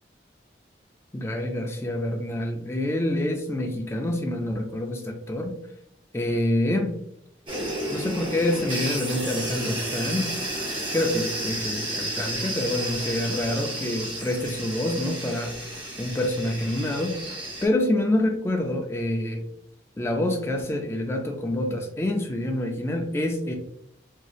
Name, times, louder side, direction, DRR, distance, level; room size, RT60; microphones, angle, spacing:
voice 1, 1.1-5.6 6.1-6.9 7.9-10.5 10.9-15.5 16.0-17.2 17.6-19.4 20.0-23.5, left 1 dB, 15° left, 3 dB, 0.3 m, -27 dB
sound 1, 7.5-17.7, right 1 dB, 25° right, 0.8 m, -32 dB
3.1 x 2.6 x 2.3 m, 0.74 s
head